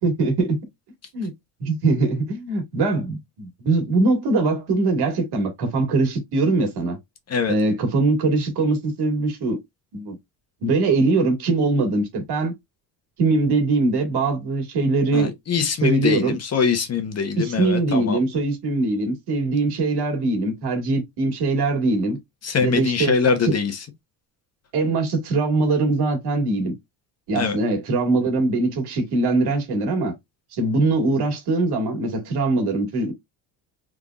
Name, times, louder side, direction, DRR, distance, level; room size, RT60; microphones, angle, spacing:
voice 1, 0.0-0.6 1.1-1.3 1.6-7.0 7.5-9.6 9.9-10.2 10.6-12.5 13.2-15.3 15.8-16.4 17.3-22.2 22.6-23.1 23.4-23.5 24.7-26.7 27.3-30.1 30.5-33.1, right 3 dB, 80° right, 2.1 m, -22 dB
voice 2, 15.1-18.2 22.4-23.8 27.3-27.6, left 6 dB, 40° left, 1.1 m, -23 dB
3.7 x 3.6 x 2.4 m
cardioid pair, 120°, 39 cm